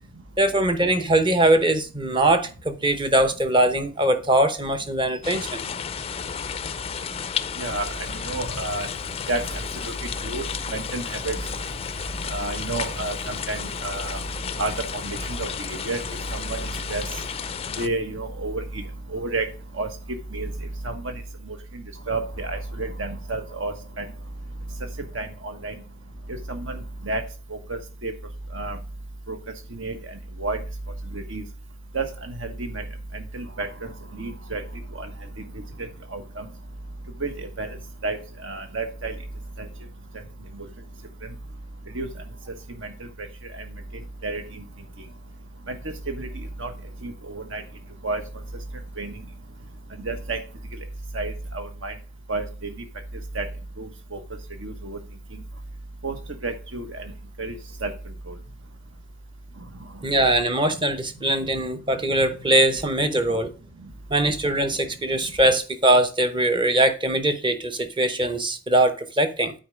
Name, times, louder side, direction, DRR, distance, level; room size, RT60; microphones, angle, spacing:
voice 1, 0.4-5.6 60.0-63.5 64.1-69.5, right 1 dB, 25° right, 0.8 m, -21 dB
sound 1, 5.2-17.9, left 7 dB, 30° left, 0.4 m, -32 dB
voice 2, 8.3-8.9 9.3-9.4 9.8-9.9 10.2-10.4 10.7-11.4 12.3-14.2 14.6-14.7 15.0-16.0 16.3-16.6 16.9-17.0 17.8-18.6 19.1-19.5 19.8-19.9 20.3-20.5 20.8-21.1 22.1-24.0 25.1-25.7 26.5-26.8 27.0-27.2 27.7-28.1 28.5-28.8 29.3-29.4 29.7-29.9 30.4-30.6 31.1-31.4 31.9-32.8 33.3-33.9 34.2-34.6 35.0-35.1 36.1-36.4 37.2-37.7 38.0-38.2 38.4-39.1 41.9-42.1 44.2-44.4 45.7-45.8 46.1-46.3 46.6-46.7 47.0-47.6 48.0-48.2 49.0-49.1 50.0-50.4 51.1-51.9 52.3-52.4 53.3-53.4 53.8-53.9 54.1-54.2 54.6-55.0 56.0-56.1 56.4-56.8 57.4-57.5 57.8-57.9, right 2 dB, 70° right, 1.3 m, -30 dB
9.0 x 4.4 x 5.0 m
head